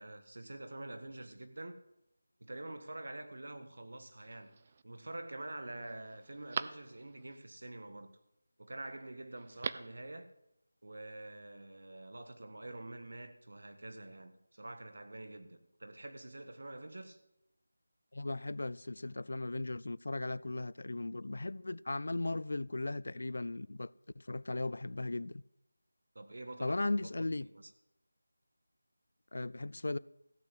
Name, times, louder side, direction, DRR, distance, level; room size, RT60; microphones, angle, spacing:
voice 1, 0.0-1.7 2.4-4.5 4.8-8.1 8.6-10.3 10.8-17.2 26.1-27.7, right 2 dB, 65° right, 1.6 m, -47 dB
Telephone, 4.2-4.8 5.4-5.5 5.8-7.4 9.4-10.0 10.3-10.4, right 5 dB, 25° right, 0.4 m, -42 dB
voice 2, 18.1-25.4 26.6-27.5 29.3-30.0, left 2 dB, 65° left, 0.4 m, -37 dB
15.0 x 7.6 x 7.9 m
figure-of-eight pair, 175°, 0 cm